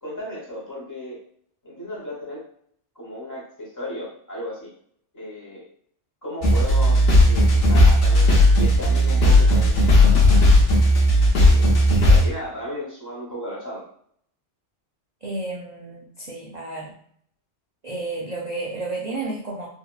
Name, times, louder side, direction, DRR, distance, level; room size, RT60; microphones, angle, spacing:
voice 1, 0.0-1.2 1.6-2.5 2.9-4.7 5.1-5.6 6.2-10.4 11.3-13.8, equal, 15° left, -6 dB, 0.9 m, -35 dB
sound 1, 6.4-12.3, left 1 dB, 55° left, 0.9 m, -15 dB
voice 2, 15.2-16.9 17.8-19.7, right 2 dB, 90° right, -2 dB, 0.3 m, -31 dB
3.5 x 2.0 x 2.3 m, 0.64 s
omnidirectional pair, 1.2 m